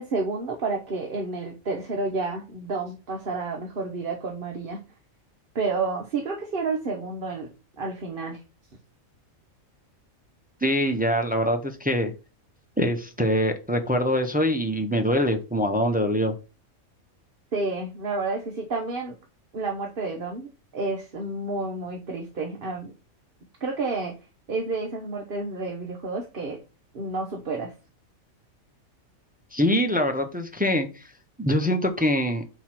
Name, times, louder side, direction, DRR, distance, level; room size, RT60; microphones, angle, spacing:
voice 1, 0.0-4.8 5.5-7.5 7.8-8.4 17.5-19.2 19.5-22.9 23.6-24.1 24.5-26.6 26.9-27.7, right 3 dB, 45° right, 1 dB, 1.1 m, -30 dB
voice 2, 10.6-12.1 12.8-16.3 29.5-31.0 31.4-32.4, equal, 10° right, 5 dB, 0.5 m, -24 dB
4.8 x 4.5 x 5.8 m, 0.32 s
omnidirectional pair, 1.4 m